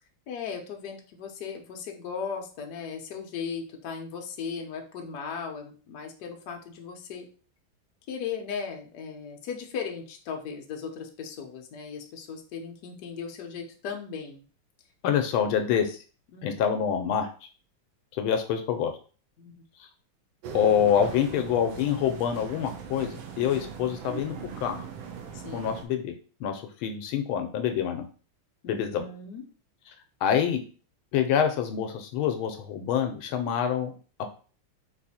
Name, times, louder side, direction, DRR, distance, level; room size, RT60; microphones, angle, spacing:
voice 1, 0.3-7.2 8.1-14.5 16.3-16.6 19.4-19.6 25.3-25.7 28.6-29.4, left 6 dB, 65° left, 2 dB, 1.2 m, -37 dB
voice 2, 15.0-16.0 16.4-17.3 18.2-19.0 20.5-24.4 24.6-24.9 25.5-26.1 26.4-28.0 28.7-29.0 30.2-30.6 31.1-33.9, left 8 dB, 80° left, 6 dB, 1.5 m, -26 dB
sound 1, 20.4-25.9, right 7 dB, 75° right, 1.4 m, -40 dB
4.1 x 2.7 x 4.2 m, 0.38 s
omnidirectional pair, 2.2 m